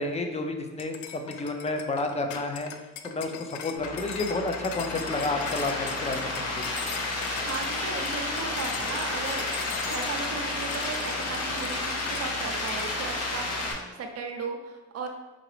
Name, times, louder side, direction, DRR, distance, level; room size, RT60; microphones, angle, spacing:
voice 1, 0.0-2.7 3.0-6.7, left 2 dB, 20° left, 5 dB, 0.6 m, -31 dB
sound 1, 0.8-12.3 12.7-12.9, left 8 dB, 75° left, 0.5 m, -40 dB
sound 2, 3.7-13.7, left 2 dB, 55° left, 1.0 m, -31 dB
voice 2, 7.5-9.5 9.9-13.5 13.8-15.1, right 4 dB, 55° right, 4 dB, 0.7 m, -36 dB
3.8 x 3.7 x 3.3 m, 1.2 s
cardioid pair, 90°, 30 cm